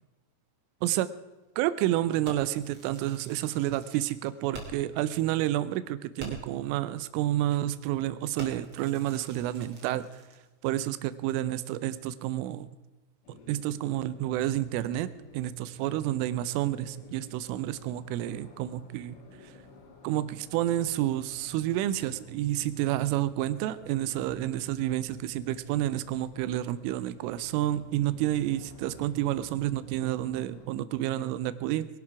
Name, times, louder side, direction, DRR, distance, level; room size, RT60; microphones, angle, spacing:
voice 1, 1.6-10.0 10.6-12.7 13.5-15.1 15.3-19.2 19.4-19.5 20.0-31.9, right 13 dB, 90° right, 14 dB, 3.2 m, -29 dB
Fireworks, 2.2-5.0 5.3-5.4 5.8-5.9 6.2-6.6 7.2-7.4 7.8-8.0 8.4-10.5, right 2 dB, 35° right, 2.9 m, -46 dB
sound 1, 13.2-30.7, left 2 dB, 90° left, 5.1 m, -53 dB
21.0 x 12.0 x 4.8 m, 1.1 s
omnidirectional pair, 5.6 m